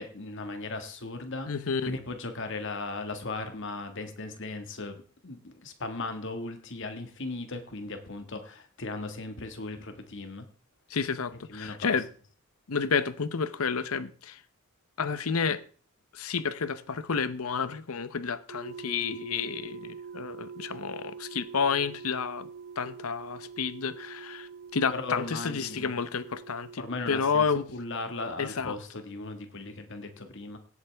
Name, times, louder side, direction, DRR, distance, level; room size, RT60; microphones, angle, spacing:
voice 1, 0.0-1.5 1.9-5.0 5.2-10.5 11.5-12.0 24.9-26.0 26.8-27.5 27.7-30.6, left 2 dB, 60° left, 1.8 m, -37 dB
voice 2, 1.5-1.9 10.9-12.1 12.7-14.4 15.0-15.6 16.1-22.5 22.8-27.7 28.4-28.7, left 5 dB, 80° left, 0.8 m, -30 dB
sound 1, 18.5-26.8, right 6 dB, 80° right, 0.6 m, -44 dB
17.0 x 8.2 x 3.4 m
head